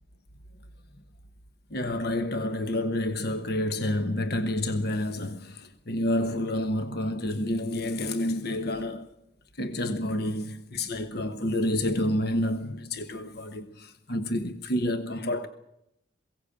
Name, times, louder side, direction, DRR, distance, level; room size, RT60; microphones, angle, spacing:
voice 1, 1.7-9.1 9.6-15.5, left 1 dB, 55° left, 1.2 m, -29 dB
22.5 x 17.0 x 8.6 m
head